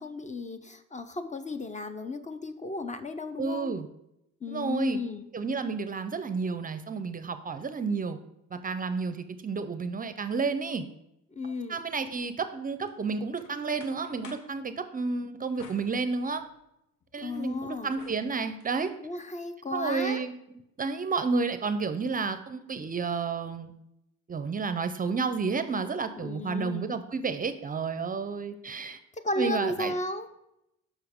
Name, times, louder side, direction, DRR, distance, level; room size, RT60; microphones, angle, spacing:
voice 1, 0.0-3.7 4.4-5.3 11.3-11.8 17.2-17.9 19.0-20.2 26.2-27.0 29.2-30.3, left 2 dB, 25° left, 10 dB, 0.5 m, -34 dB
voice 2, 3.4-3.9 4.5-5.0 5.3-8.2 8.5-10.8 11.7-16.4 17.1-18.9 19.7-20.3 20.8-23.7 24.3-29.0 29.4-29.9, right 4 dB, 30° right, 10 dB, 0.5 m, -31 dB
sound 1, 12.9-14.6 15.6-16.6 17.1-18.8, left 5 dB, 85° left, 0.9 m, -53 dB
6.9 x 5.5 x 3.5 m, 0.84 s
cardioid pair, 90°, 30 cm